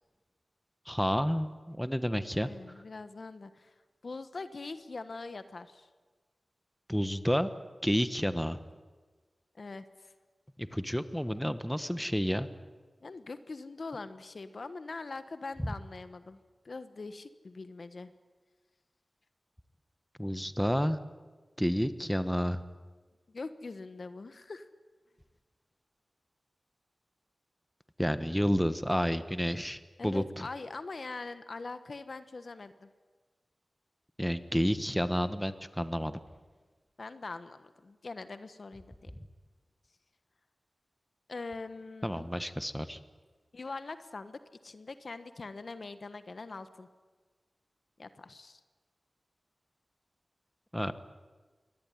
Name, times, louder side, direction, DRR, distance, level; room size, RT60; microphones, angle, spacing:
voice 1, 0.9-2.5 6.9-7.5 7.8-8.6 10.6-12.5 20.2-21.0 21.6-22.6 28.0-30.5 34.2-36.2 42.0-43.0 50.7-50.9, equal, 5° left, 11 dB, 1.2 m, -30 dB
voice 2, 2.4-3.7 4.0-5.9 9.5-10.1 13.0-18.1 23.3-24.7 30.0-32.9 37.0-39.2 41.3-42.3 43.5-46.9 48.0-48.6, left 3 dB, 65° left, 11 dB, 1.3 m, -43 dB
24.0 x 18.0 x 9.8 m, 1.4 s
wide cardioid pair, 60°, 0 cm